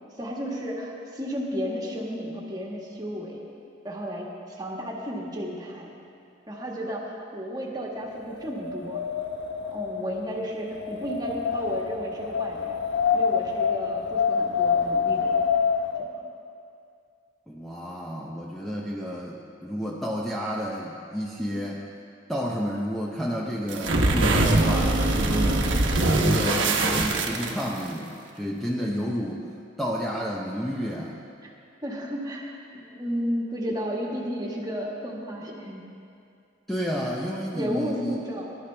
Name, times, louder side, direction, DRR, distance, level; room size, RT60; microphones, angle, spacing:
voice 1, 0.1-3.5 3.8-5.9 6.5-9.0 9.7-12.8 13.1-15.4 16.0-16.2 21.4-21.5 31.4-31.5 31.8-35.8 37.5-38.6, equal, 20° right, -2 dB, 1.7 m, -33 dB
Wind, 8.1-16.1, left 6 dB, 80° left, 0.9 m, -27 dB
voice 2, 17.5-21.8 22.3-25.7 26.2-29.5 29.8-31.2 36.7-38.2, equal, ahead, -4 dB, 0.8 m, -30 dB
sound 1, 23.7-27.9, right 2 dB, 85° right, 1.2 m, -22 dB
20.0 x 12.0 x 3.4 m, 2.5 s
head